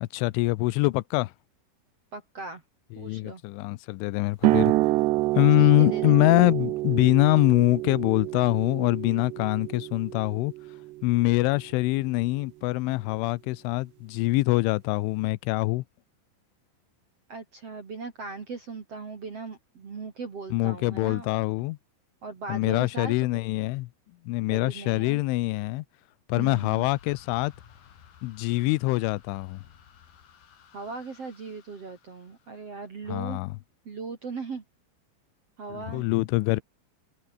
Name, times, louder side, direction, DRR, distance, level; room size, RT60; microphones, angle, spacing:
voice 1, 0.0-1.3 2.9-4.7 5.4-10.5 11.0-15.8 20.5-21.8 22.5-23.9 24.3-25.8 26.3-27.5 28.2-29.6 33.1-33.5 35.7-36.6, left 21 dB, 80° left, 3.2 m, -24 dB
voice 2, 2.1-2.6 2.9-3.4 5.6-6.4 17.3-21.3 22.2-23.3 24.5-25.2 26.4-26.9 30.7-33.4 33.8-34.6 35.6-36.1, right 4 dB, 40° right, 2.8 m, -38 dB
sound 1, 4.4-11.6, right 19 dB, 80° right, 2.6 m, -28 dB
sound 2, 26.5-32.9, left 8 dB, 50° left, 3.9 m, -55 dB
omnidirectional pair, 5.6 m